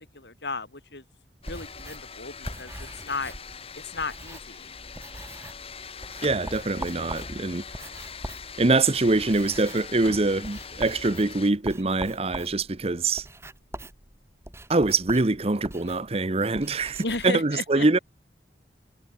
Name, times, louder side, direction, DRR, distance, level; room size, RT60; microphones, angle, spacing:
voice 1, 0.1-1.0 1.5-3.3 3.7-4.7 17.0-17.9, left 3 dB, 70° left, 4.4 m, -34 dB
sound 1, 1.4-11.5, left 5 dB, 35° left, 6.1 m, -42 dB
sound 2, 1.4-4.7 4.9-5.7 6.0-17.3, right 1 dB, 15° right, 1.9 m, -42 dB
voice 2, 6.2-7.6 8.6-13.3 14.7-18.0, right 3 dB, 35° right, 0.9 m, -24 dB
head